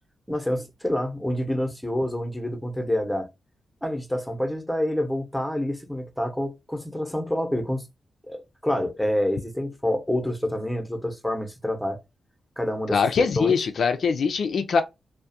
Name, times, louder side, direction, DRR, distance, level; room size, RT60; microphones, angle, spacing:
voice 1, 0.3-3.3 3.8-7.9 8.3-12.0 12.6-13.6, left 1 dB, 5° left, 0.7 m, -27 dB
voice 2, 12.9-14.8, left 5 dB, 75° left, 0.3 m, -22 dB
2.3 x 2.1 x 2.6 m
cardioid pair, 65°, 0 cm